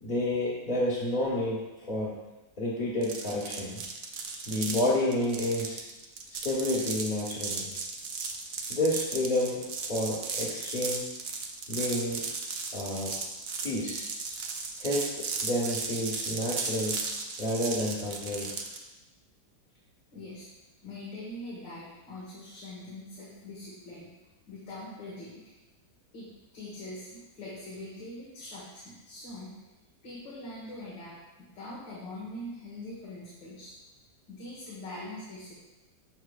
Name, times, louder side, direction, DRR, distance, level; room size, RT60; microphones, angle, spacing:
voice 1, 0.0-1.6 1.9-2.1 2.6-3.8 4.5-5.8 6.3-7.7 8.7-11.1 11.7-12.2 12.7-13.1 13.6-14.1 14.8-17.0 17.4-18.5, left 1 dB, 30° left, -8 dB, 1.4 m, -30 dB
sound 1, 3.0-18.8, right 4 dB, 75° right, 0.5 m, -36 dB
voice 2, 20.1-20.5 20.8-24.1 24.5-25.4 26.1-29.5 30.0-33.7 34.3-35.6, left 1 dB, 75° left, -8 dB, 2.3 m, -43 dB
12.5 x 4.8 x 2.4 m, 1.1 s
omnidirectional pair, 2.0 m